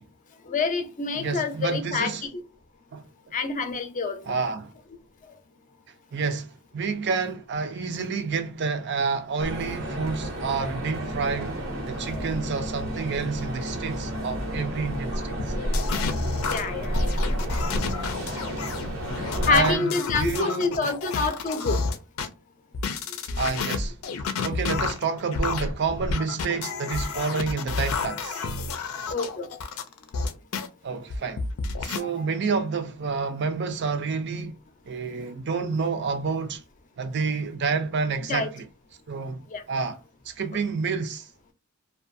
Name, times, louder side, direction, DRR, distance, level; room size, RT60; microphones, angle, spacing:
voice 1, 0.5-2.4 3.3-4.2 5.3-5.4 12.1-12.2 15.7-15.8 16.4-17.2 17.9-18.1 18.9-21.8 28.9-29.5 32.1-32.3 38.3-38.5 39.5-39.6, left 4 dB, 40° left, 0.5 m, -28 dB
voice 2, 1.1-2.3 2.9-3.0 4.3-4.7 6.1-11.6 11.9-15.5 18.8-18.9 19.2-19.9 20.2-20.9 23.3-24.0 24.4-28.4 30.8-31.4 31.8-34.5 34.8-36.6 37.0-38.6 39.1-40.0 40.3-41.3, right 5 dB, 55° right, 0.5 m, -29 dB
sound 1, 9.4-19.8, equal, 85° right, 1.0 m, -31 dB
sound 2, 15.4-22.3 22.7-30.7 31.1-32.0, left 4 dB, 90° left, 0.5 m, -30 dB
2.5 x 2.3 x 2.5 m
head